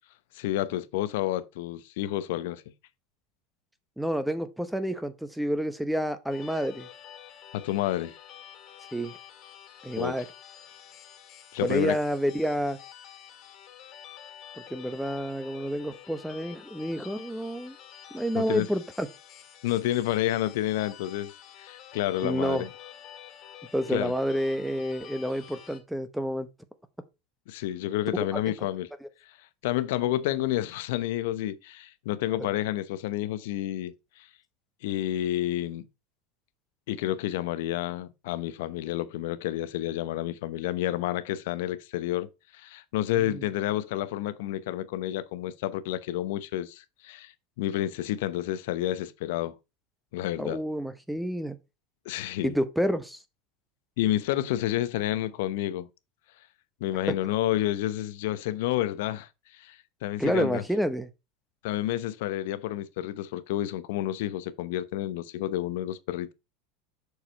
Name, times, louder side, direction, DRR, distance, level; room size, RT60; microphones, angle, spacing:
voice 1, 0.3-2.6 7.5-8.1 10.0-10.1 11.5-12.0 18.3-18.7 19.6-21.3 21.6-22.7 23.9-24.1 27.5-28.9 29.6-34.3 34.8-35.9 36.9-47.3 47.6-49.6 50.1-50.6 52.1-52.6 54.0-55.9 56.8-60.6 61.6-66.3, left 13 dB, 75° left, 0.8 m, -30 dB
voice 2, 4.0-6.9 8.9-9.1 9.8-10.3 11.6-12.8 14.7-17.8 18.1-19.1 22.2-22.7 23.7-26.5 28.1-28.5 43.2-43.4 50.4-51.6 52.4-53.2 57.1-57.2 60.2-61.1, equal, ahead, 0.8 m, -29 dB
sound 1, 6.3-25.8, left 10 dB, 40° left, 2.0 m, -49 dB
6.9 x 4.8 x 4.4 m
supercardioid pair, 135°, 0 cm